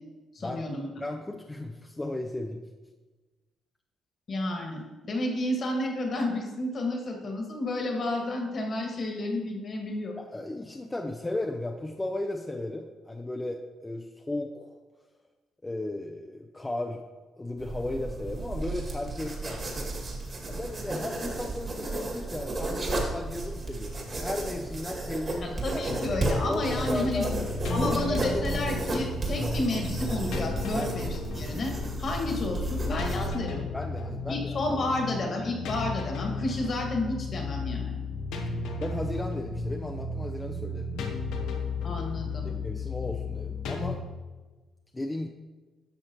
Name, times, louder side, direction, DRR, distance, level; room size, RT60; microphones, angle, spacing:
voice 1, 0.3-0.9 4.3-10.2 25.4-27.3 27.7-31.1 31.4-31.7 32.0-33.6 34.3-38.0 41.0-41.1 41.8-42.5, left 2 dB, 50° left, 1 dB, 1.7 m, -31 dB
voice 2, 1.0-2.6 10.2-14.8 15.6-17.0 17.4-19.6 20.5-25.8 26.4-27.3 27.8-28.6 29.3-29.7 30.7-30.9 33.7-34.6 38.8-41.1 42.6-44.0 44.9-45.3, left 1 dB, 15° left, 2 dB, 0.5 m, -35 dB
sound 1, 17.6-33.3, right 2 dB, 40° right, 2.0 m, -33 dB
sound 2, 25.9-44.0, left 3 dB, 85° left, 0.9 m, -34 dB
10.5 x 6.4 x 2.9 m, 1.3 s
cardioid pair, 90°, 0 cm